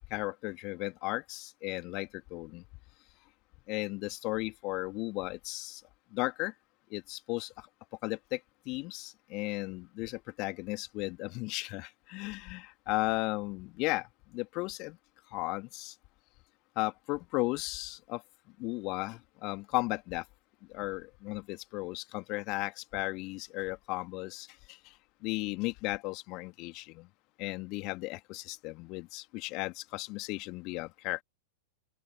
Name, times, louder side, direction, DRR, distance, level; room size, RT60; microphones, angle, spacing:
voice 1, 0.1-2.6 3.7-5.8 6.1-6.5 6.9-7.5 8.0-8.4 8.7-14.1 14.3-15.0 15.3-15.9 16.8-18.2 18.6-20.2 20.7-24.8 25.2-27.1 27.4-31.2, left 24 dB, 40° left, 2.1 m, -35 dB
open air
figure-of-eight pair, 95°, 0 cm